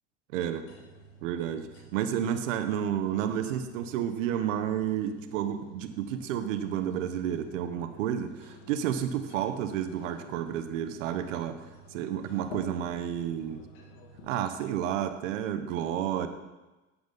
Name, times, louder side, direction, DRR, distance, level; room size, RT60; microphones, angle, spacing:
voice 1, 0.3-0.6 1.2-11.6 11.9-13.6 14.2-16.3, right 10 dB, 85° right, 9 dB, 1.0 m, -31 dB
sound 1, 0.6-14.4, equal, 70° left, 2.0 m, -51 dB
9.7 x 8.2 x 5.4 m, 1.1 s
hypercardioid pair, 85°, 37 cm